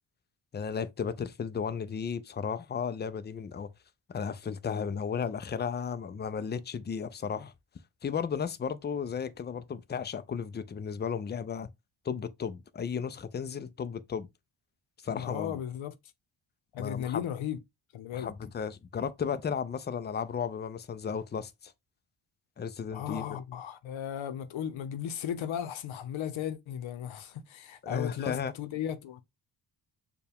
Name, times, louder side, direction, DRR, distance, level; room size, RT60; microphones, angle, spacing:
voice 1, 0.5-3.7 4.1-7.5 8.0-11.7 12.0-14.3 15.0-15.6 16.8-17.2 18.1-21.7 22.6-23.3 27.8-28.5, left 6 dB, 25° left, 0.4 m, -34 dB
voice 2, 15.1-15.9 16.7-17.6 17.9-18.3 22.9-29.2, left 9 dB, 85° left, 0.7 m, -36 dB
6.8 x 2.3 x 3.4 m
wide cardioid pair, 145°, 46 cm